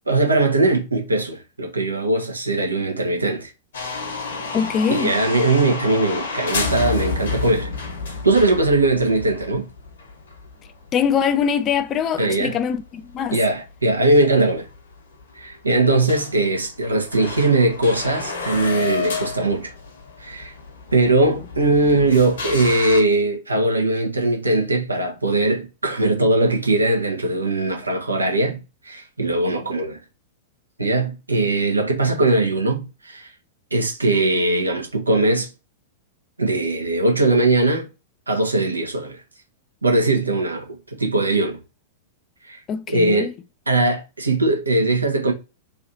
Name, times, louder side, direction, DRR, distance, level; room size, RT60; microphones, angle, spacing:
voice 1, 0.1-3.5 4.9-7.7 8.2-9.6 12.2-12.6 13.3-14.7 15.3-19.7 20.2-20.5 20.9-28.6 28.8-30.0 30.8-33.3 33.7-35.5 36.4-37.9 38.3-39.2 39.8-41.6 42.4-42.6 42.9-43.3 43.7-45.3, right 2 dB, 80° right, 1.0 m, -20 dB
sound 1, 3.7-11.9 12.2-12.3 12.9-13.0 13.9-14.0 14.2-14.3 14.7-14.8 15.2-15.5 15.8-15.9 16.1-23.0, left 4 dB, 65° left, 1.1 m, -30 dB
voice 2, 4.5-5.2 10.9-13.4 42.7-43.3, left 7 dB, 30° left, 0.4 m, -22 dB
3.2 x 2.7 x 2.6 m
figure-of-eight pair, 95°, 0 cm